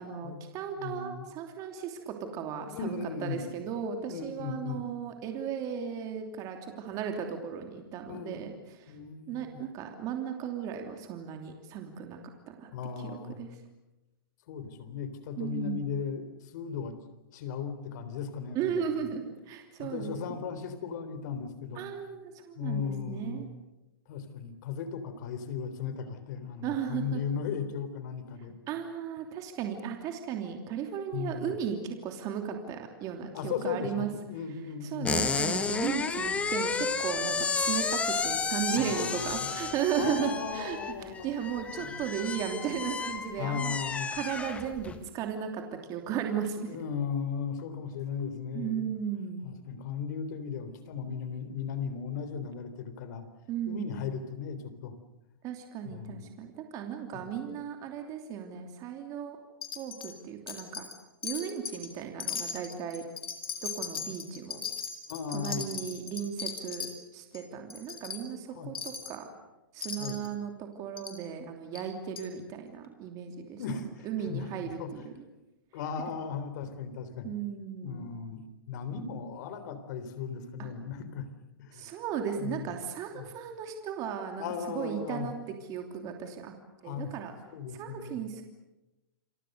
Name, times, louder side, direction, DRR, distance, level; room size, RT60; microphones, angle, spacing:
voice 1, 0.0-8.9 9.3-12.2 12.5-12.7 13.0-13.1 13.4-13.5 15.4-15.8 18.5-20.4 21.8-23.5 26.6-27.2 28.7-34.1 34.8-43.8 44.1-45.6 45.9-46.8 48.5-49.5 53.5-53.9 55.4-59.4 59.7-60.9 61.2-63.0 63.6-64.6 65.3-66.9 67.1-69.3 69.7-73.6 74.0-75.1 77.2-78.1 81.7-84.5 84.7-85.4 85.7-86.5 86.8-87.3 87.7-88.4, right 8 dB, 30° right, 4 dB, 3.0 m, -35 dB
voice 2, 0.8-1.3 2.7-3.4 4.1-4.9 6.9-7.0 8.1-8.6 8.9-9.6 12.7-13.4 14.5-17.0 17.3-19.1 19.8-21.9 22.6-23.4 24.1-28.6 31.1-31.5 33.3-35.2 38.8-41.3 41.7-42.0 43.4-44.1 46.7-48.9 49.4-53.3 53.7-55.0 55.8-56.2 57.1-57.4 65.1-65.7 68.5-68.7 70.0-70.2 73.6-74.9 75.7-77.4 77.8-81.3 81.6-82.0 82.4-82.7 83.1-83.3 84.4-85.3 86.8-87.1 87.5-88.2, left 6 dB, 50° left, 11 dB, 3.8 m, -37 dB
sound 1, 35.0-45.0, left 5 dB, 10° left, 1.6 m, -32 dB
Wind chime, 59.6-60.1 60.5-61.0 61.2-61.9 62.2-66.9 67.3-67.4 67.7-68.2 68.7-69.1 69.8-70.3 71.0-71.2 71.7-71.8 72.2-72.3, left 7 dB, 85° left, 4.7 m, -38 dB
29.0 x 23.5 x 6.8 m, 0.99 s
hypercardioid pair, 150°, 12 cm